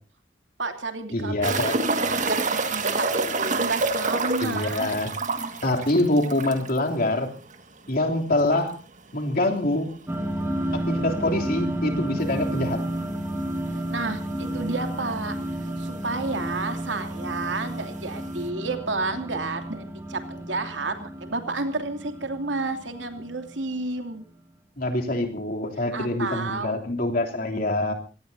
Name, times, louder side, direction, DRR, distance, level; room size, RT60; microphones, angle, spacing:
voice 1, 0.6-4.9 13.9-15.4 15.8-24.2 25.9-26.8, right 3 dB, 85° right, 6 dB, 2.8 m, -31 dB
voice 2, 1.1-1.8 4.4-5.1 5.6-7.3 7.9-8.8 9.1-9.9 10.7-12.8 24.8-27.9, left 1 dB, 55° left, 2 dB, 3.1 m, -25 dB
sound 1, 1.4-6.8 7.1-7.2 7.5-7.6 10.4-10.5 12.2-12.3 13.1-13.2 13.4-13.5 14.4-14.5 14.7-15.3 16.2-16.3, right 3 dB, 45° right, 1.9 m, -27 dB
sound 2, 10.1-24.0, right 1 dB, 15° right, 2.4 m, -32 dB
26.0 x 18.0 x 2.8 m, 0.34 s
head